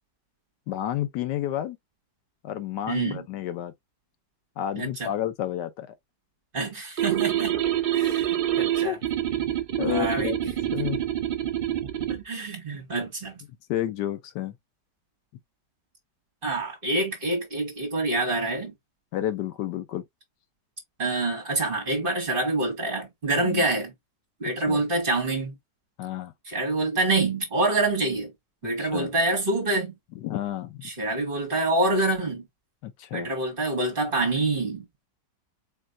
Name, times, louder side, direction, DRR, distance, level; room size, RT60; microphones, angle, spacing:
voice 1, 0.7-1.8 2.4-3.7 4.6-5.9 8.8-9.0 9.8-11.0 13.7-14.5 19.1-20.0 23.4-23.6 24.7-24.8 26.0-26.3 28.8-29.1 30.2-30.9 32.8-33.3, left 12 dB, 75° left, 1.2 m, -31 dB
voice 2, 2.9-3.3 4.8-5.1 6.5-7.6 7.9-9.0 9.8-10.3 12.1-13.4 16.4-18.7 21.0-23.9 24.4-25.5 26.5-28.3 28.6-29.9 30.8-32.5 33.1-34.9, right 2 dB, 30° right, 1.7 m, -26 dB
sound 1, 7.0-12.2, right 12 dB, 85° right, 0.4 m, -26 dB
4.6 x 3.0 x 2.5 m
omnidirectional pair, 1.9 m